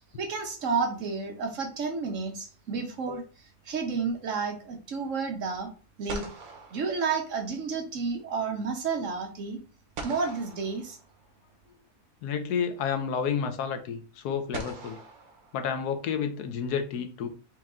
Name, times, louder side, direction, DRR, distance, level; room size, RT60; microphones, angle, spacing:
voice 1, 0.2-3.2 3.7-5.7 6.0-6.3 6.7-9.6 10.0-11.0, right 5 dB, 60° right, 1.2 m, -31 dB
sound 1, 0.6-1.5 5.5-5.6 6.1-7.8 10.0-11.5 12.9-13.0 14.5-16.2, right 3 dB, 75° right, 1.4 m, -43 dB
voice 2, 12.2-15.0 15.5-17.3, left 7 dB, 85° left, 1.3 m, -30 dB
4.5 x 3.0 x 3.6 m
omnidirectional pair, 1.6 m